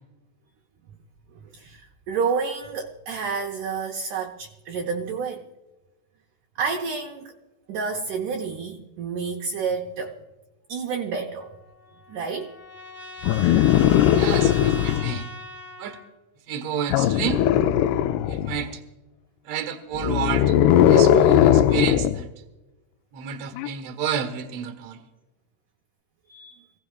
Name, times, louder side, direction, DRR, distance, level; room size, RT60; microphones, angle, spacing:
voice 1, 1.4-5.4 6.6-7.3 7.7-10.2 10.7-11.6 12.1-12.5 26.3-26.7, right 5 dB, 75° right, 3 dB, 1.9 m, -29 dB
Trumpet, 11.4-16.1, left 1 dB, 15° right, 0.5 m, -40 dB
sound 1, 13.2-15.2 16.9-18.6 19.9-22.2 23.6-23.7, left 10 dB, 90° left, 2.6 m, -19 dB
voice 2, 14.1-15.3 15.8-16.0 16.5-17.4 18.3-18.8 19.5-20.6 20.9-22.3 23.1-25.0, right 8 dB, 60° right, 7 dB, 1.8 m, -30 dB
25.0 x 16.5 x 2.4 m, 1.1 s
omnidirectional pair, 4.6 m